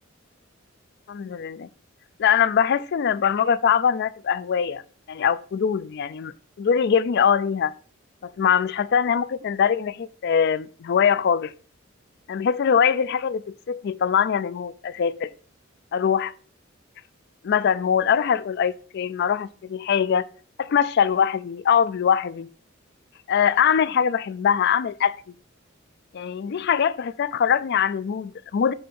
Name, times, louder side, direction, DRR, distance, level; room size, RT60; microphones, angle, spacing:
voice 1, 1.1-1.7 2.2-4.8 5.1-6.3 6.6-7.7 8.2-11.5 12.3-15.3 15.9-16.3 17.4-20.3 20.6-22.5 23.3-25.2 26.1-28.7, left 7 dB, 55° left, 0.3 m, -22 dB
7.0 x 3.3 x 5.3 m
head